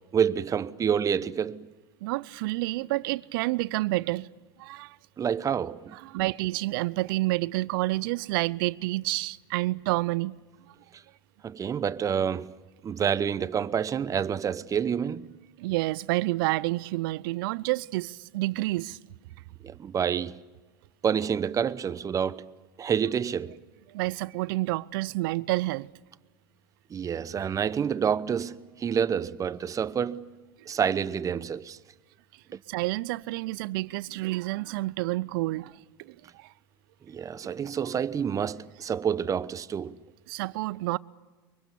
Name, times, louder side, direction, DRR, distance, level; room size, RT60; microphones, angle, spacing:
voice 1, 0.1-1.7 5.2-5.9 11.4-12.5 12.8-15.3 19.6-20.4 21.0-22.4 22.8-23.6 26.9-30.2 30.7-31.8 32.5-32.6 37.1-40.0, right 7 dB, 25° right, 0.9 m, -28 dB
voice 2, 2.0-4.3 4.6-5.0 5.9-10.3 15.6-19.0 23.9-25.9 32.7-36.5 40.3-41.0, right 20 dB, 65° right, 0.7 m, -29 dB
24.5 x 23.5 x 7.1 m
hypercardioid pair, 95°, 12 cm